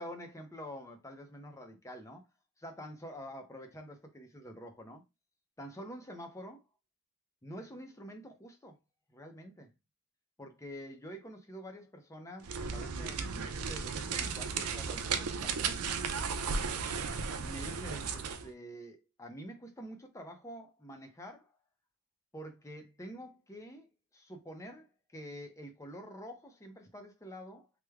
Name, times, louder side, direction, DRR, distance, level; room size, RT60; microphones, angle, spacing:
voice 1, 0.0-2.2 2.6-5.0 5.6-6.6 7.4-8.8 9.1-9.7 10.4-16.0 17.4-21.5 22.3-23.9 24.1-27.7, equal, 15° left, 0.6 m, -47 dB
sound 1, 12.4-18.5, right 5 dB, 75° right, 0.5 m, -35 dB
3.3 x 2.1 x 3.4 m
head